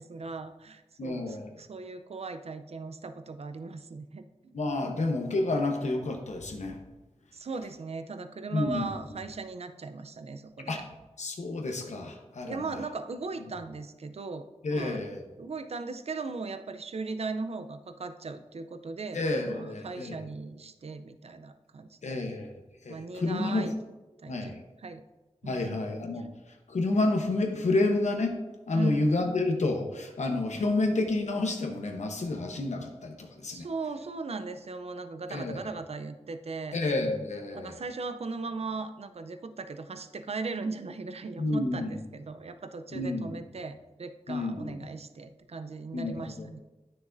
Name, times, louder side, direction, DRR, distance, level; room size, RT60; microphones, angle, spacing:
voice 1, 0.0-4.5 4.8-5.0 7.3-10.8 12.5-15.0 15.4-22.2 22.9-23.7 24.2-24.5 24.8-25.0 25.4-25.8 28.7-29.2 33.5-36.8 37.5-46.6, right 4 dB, 60° right, 10 dB, 0.5 m, -38 dB
voice 2, 1.0-1.5 4.5-6.8 8.5-8.9 10.7-10.9 11.2-12.7 14.6-15.2 19.1-20.3 22.0-22.5 22.8-23.7 24.3-24.6 25.4-26.3 26.7-28.3 28.7-33.7 35.3-35.6 36.7-37.8 41.4-42.0 42.9-43.4 44.3-44.9 45.9-46.5, left 2 dB, 90° left, 2 dB, 1.0 m, -29 dB
9.9 x 6.3 x 2.6 m, 1.1 s
wide cardioid pair, 95°, 12 cm